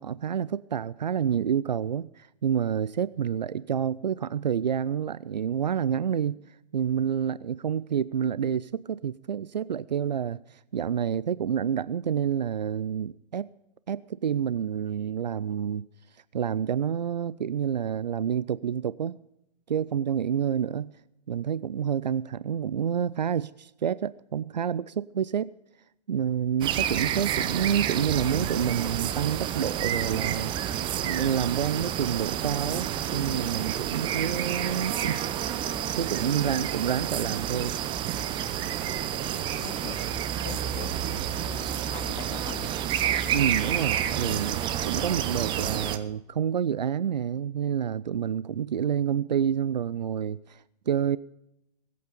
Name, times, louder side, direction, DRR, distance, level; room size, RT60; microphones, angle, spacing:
voice 1, 0.0-6.4 6.7-13.5 13.9-15.9 16.3-19.2 19.7-20.9 21.3-25.5 26.1-30.5 31.0-35.3 35.9-37.7 43.3-51.2, right 8 dB, 85° right, 19 dB, 0.4 m, -28 dB
sound 1, 26.6-46.0, right 10 dB, 20° right, 0.8 m, -29 dB
voice 2, 39.6-41.5 41.9-42.7, left 14 dB, 30° left, 11 dB, 0.7 m, -43 dB
20.5 x 8.5 x 5.1 m, 0.86 s
figure-of-eight pair, 120°, 21 cm